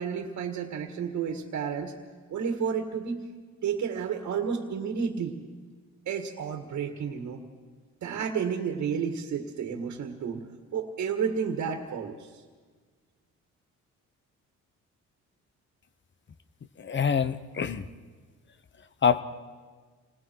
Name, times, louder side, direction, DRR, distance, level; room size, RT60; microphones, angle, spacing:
voice 1, 0.0-1.9 2.3-3.2 3.6-5.4 6.1-7.4 8.0-10.4 10.7-12.4, right 6 dB, 70° right, 3 dB, 1.9 m, -31 dB
voice 2, 16.8-17.8 19.0-19.2, left 7 dB, 40° left, 12 dB, 1.1 m, -25 dB
28.0 x 20.0 x 4.7 m, 1.5 s
cardioid pair, 90°, 30 cm